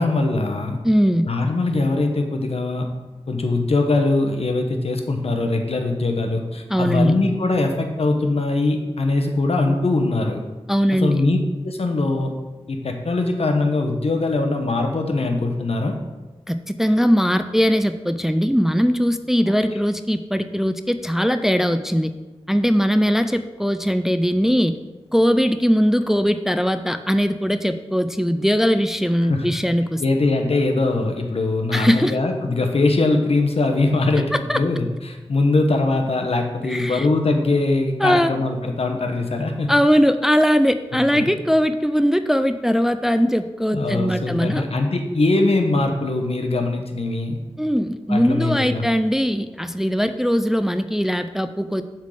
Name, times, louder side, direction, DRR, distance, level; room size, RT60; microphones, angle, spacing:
voice 1, 0.0-0.8 1.3-2.9 3.3-10.4 11.0-11.4 11.6-12.3 12.7-15.9 29.3-29.5 30.0-39.7 41.1-41.3 43.7-47.4 48.1-48.9, left 2 dB, 70° left, 4 dB, 1.0 m, -21 dB
voice 2, 0.8-1.3 6.7-7.2 10.7-11.2 16.5-22.1 22.5-24.7 25.1-30.0 31.7-32.2 34.5-34.6 36.7-37.1 38.0-38.3 39.7-44.7 47.6-51.8, equal, 5° right, 9 dB, 0.4 m, -20 dB
7.3 x 3.8 x 6.4 m, 1.2 s
wide cardioid pair, 60°, 11 cm